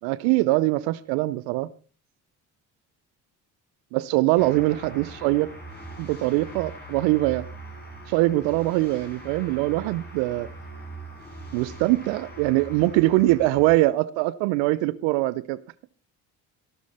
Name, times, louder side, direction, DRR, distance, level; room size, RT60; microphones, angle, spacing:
voice 1, 0.0-1.7 3.9-5.5 6.0-7.5 8.1-10.5 11.5-15.6, right 18 dB, 75° right, 0.7 m, -22 dB
sound 1, 4.4-13.8, right 1 dB, 20° left, 7.7 m, -42 dB
14.5 x 12.5 x 4.2 m
hypercardioid pair, 50°, 45 cm